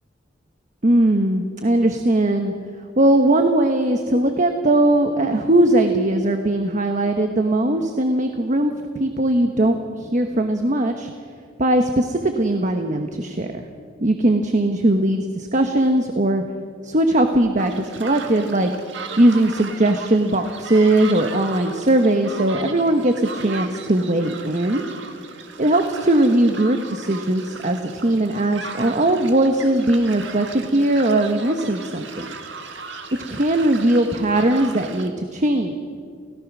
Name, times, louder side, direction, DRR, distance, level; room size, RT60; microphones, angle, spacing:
voice 1, 0.8-2.5 3.0-11.1 11.6-13.6 14.0-16.4 16.8-18.7 19.2-24.8 25.6-32.3 33.3-35.8, right 1 dB, 45° right, 5 dB, 1.2 m, -19 dB
sound 1, 17.6-35.1, right 4 dB, 80° right, 1.9 m, -37 dB
29.0 x 17.0 x 6.2 m, 2.1 s
head